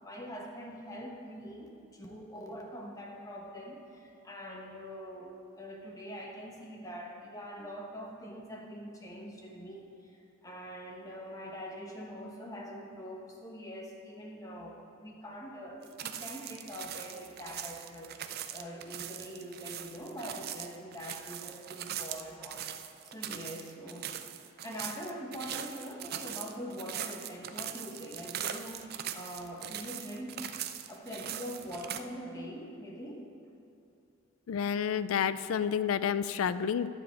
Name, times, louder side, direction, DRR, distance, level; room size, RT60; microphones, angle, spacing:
voice 1, 0.0-18.1 18.5-22.7 23.0-24.2 24.6-30.4 30.9-33.3 35.3-35.4, equal, 15° left, 0 dB, 1.1 m, -43 dB
sound 1, 15.8-32.0, right 10 dB, 45° right, 0.4 m, -41 dB
voice 2, 34.5-36.9, left 7 dB, 80° left, 14 dB, 0.4 m, -30 dB
12.5 x 4.9 x 7.5 m, 2.5 s
head